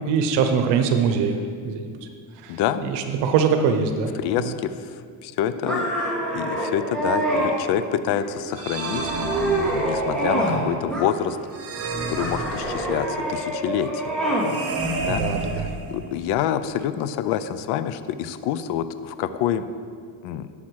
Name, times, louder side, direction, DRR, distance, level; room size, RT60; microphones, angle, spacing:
voice 1, 0.1-1.4 1.6-1.9 2.4-4.1 4.4-4.5 15.1-15.7, right 6 dB, 85° right, 7 dB, 1.0 m, -23 dB
voice 2, 2.5-2.8 4.2-4.9 5.2-11.4 12.1-14.1 15.0-15.2 15.5-19.6 20.2-20.5, left 10 dB, 70° left, 12 dB, 0.6 m, -27 dB
sound 1, 5.6-7.5 8.1-8.6 9.0-10.6 10.9-11.6 12.2-14.5, right 1 dB, ahead, 2.3 m, -26 dB
sound 2, 8.5-10.2 11.5-13.2 14.4-16.3, right 3 dB, 35° right, 1.1 m, -30 dB
11.5 x 7.3 x 4.7 m, 2.2 s
cardioid pair, 150°, 41 cm